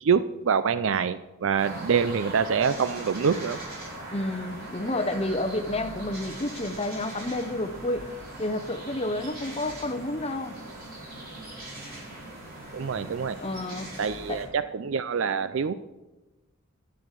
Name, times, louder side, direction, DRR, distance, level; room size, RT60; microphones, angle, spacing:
voice 1, 0.0-3.6 12.7-13.4 14.0-15.7, right 6 dB, 65° right, 13 dB, 0.4 m, -25 dB
sound 1, 1.6-14.4, right 1 dB, 45° right, 4.4 m, -40 dB
voice 2, 4.1-8.1 8.4-10.6 13.4-13.9 14.3-14.4, left 1 dB, 30° left, 9 dB, 0.8 m, -30 dB
12.5 x 7.1 x 6.5 m, 1.1 s
head